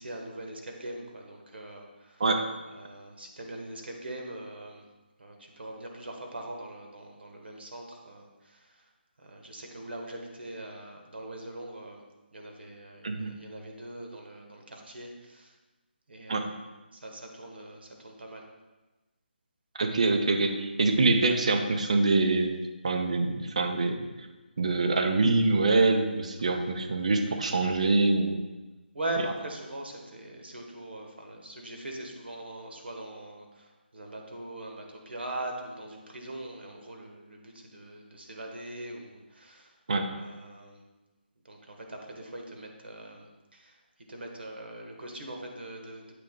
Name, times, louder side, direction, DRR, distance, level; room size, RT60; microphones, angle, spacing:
voice 1, 0.0-2.2 2.7-4.8 5.2-8.9 9.2-12.0 12.3-15.5 16.1-16.5 16.9-18.4 28.9-39.7 40.2-40.9 41.4-43.8 44.1-46.1, right 1 dB, 70° right, 2 dB, 1.2 m, -41 dB
voice 2, 19.7-22.5 22.8-24.0 24.6-28.4 39.9-40.1, right 3 dB, 40° right, 6 dB, 0.5 m, -25 dB
8.2 x 3.3 x 3.7 m, 1.1 s
hypercardioid pair, 175°, 6 cm